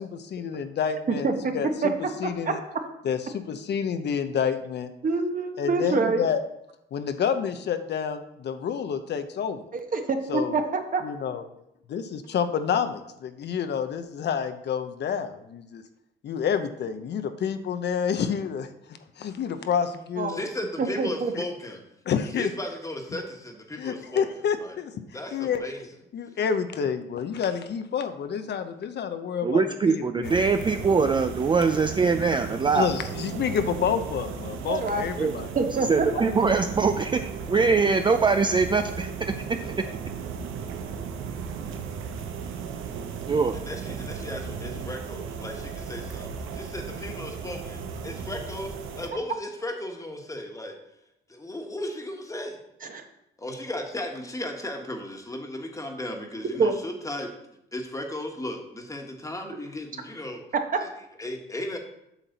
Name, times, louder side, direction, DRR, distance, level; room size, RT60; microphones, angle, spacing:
voice 1, 0.0-1.3 1.5-1.9 2.2-2.6 3.0-4.9 5.6-6.4 6.9-9.6 10.3-10.5 11.0-11.4 11.9-15.8 16.2-18.7 19.2-20.4 21.4-21.5 22.1-22.5 23.8-24.9 25.3-25.6 26.1-30.3 32.7-35.5 36.4-36.5, left 7 dB, 60° left, 9 dB, 0.7 m, -28 dB
voice 2, 1.1-1.5 1.8-1.9 2.5-2.6 5.0-6.2 9.7-11.0 20.2-20.3 20.8-21.3 34.7-35.0 35.5-36.3 52.8-53.0 56.6-56.7 60.7-60.8, right 4 dB, 45° right, 5 dB, 1.1 m, -26 dB
voice 3, 20.3-21.8 22.3-24.3 24.6-24.8 25.1-25.9 43.5-50.7 51.3-52.6 53.4-57.3 57.7-60.4 60.8-60.9 61.2-61.8, left 1 dB, 15° left, 3 dB, 1.4 m, -35 dB
voice 4, 29.4-32.9 34.7-34.8 35.2-35.3 35.9-39.3 39.6-39.7 43.3-43.5, right 4 dB, 25° right, 7 dB, 0.4 m, -23 dB
sound 1, 30.2-49.1, right 6 dB, 90° right, 0.8 m, -36 dB
8.1 x 6.0 x 4.0 m, 0.81 s
cardioid pair, 90°, 20 cm